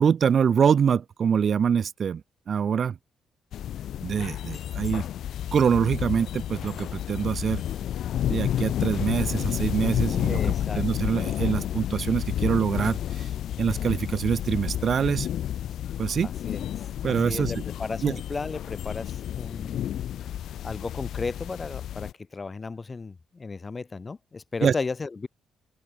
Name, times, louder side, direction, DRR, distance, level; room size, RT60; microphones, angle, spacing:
voice 1, 0.0-2.2 2.5-3.0 4.0-5.1 5.5-7.6 8.3-10.4 10.8-13.3 13.6-15.3 16.0-16.3 17.0-17.6 18.0-18.1 24.6-24.7, right 7 dB, 50° right, 1.9 m, -24 dB
sound 1, 3.5-22.1, left 11 dB, 70° left, 1.2 m, -30 dB
voice 2, 10.3-10.8 16.2-16.6 17.0-19.8 20.6-25.3, left 4 dB, 30° left, 1.5 m, -34 dB
open air
cardioid pair, 90°, 0 cm